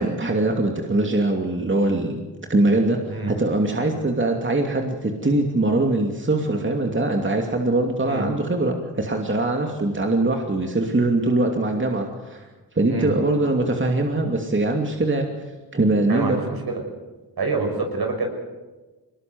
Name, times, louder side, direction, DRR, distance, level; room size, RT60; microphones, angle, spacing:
voice 1, 0.0-2.2 2.5-12.5 12.7-15.3 15.7-16.4, right 2 dB, 30° right, 2 dB, 2.8 m, -22 dB
voice 2, 16.1-16.8 17.4-18.3, right 3 dB, 65° right, 3 dB, 6.7 m, -26 dB
22.5 x 20.0 x 7.9 m, 1.2 s
cardioid pair, 50°, 41 cm